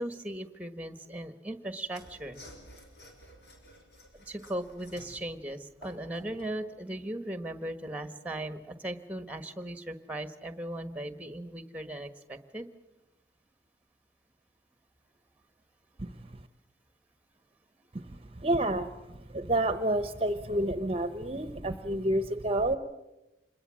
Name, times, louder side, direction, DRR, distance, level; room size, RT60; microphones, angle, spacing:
voice 1, 0.0-2.4 4.1-12.7 21.3-21.4, right 1 dB, 10° right, 10 dB, 1.3 m, -38 dB
Mechanisms / Sawing, 1.9-6.6, left 1 dB, 65° left, 5.8 m, -53 dB
voice 2, 16.0-16.5 17.9-22.8, right 1 dB, 30° right, 11 dB, 0.9 m, -30 dB
26.5 x 21.5 x 7.5 m, 0.97 s
head